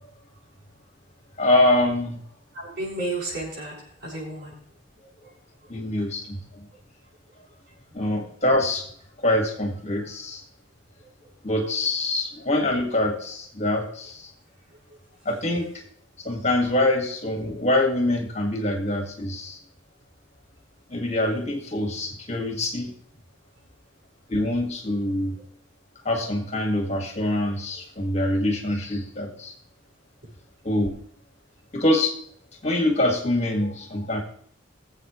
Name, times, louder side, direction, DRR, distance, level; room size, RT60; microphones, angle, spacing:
voice 1, 1.4-2.2 5.7-6.7 7.9-8.8 9.2-10.4 11.4-14.3 15.3-15.7 16.2-19.6 20.9-22.9 24.3-25.4 26.0-29.5 30.6-30.9 31.7-32.1 32.6-34.2, left 1 dB, 35° left, 2 dB, 2.1 m, -24 dB
voice 2, 2.5-4.6, right 2 dB, 55° right, -4 dB, 6.5 m, -32 dB
21.5 x 8.0 x 3.2 m, 0.64 s
head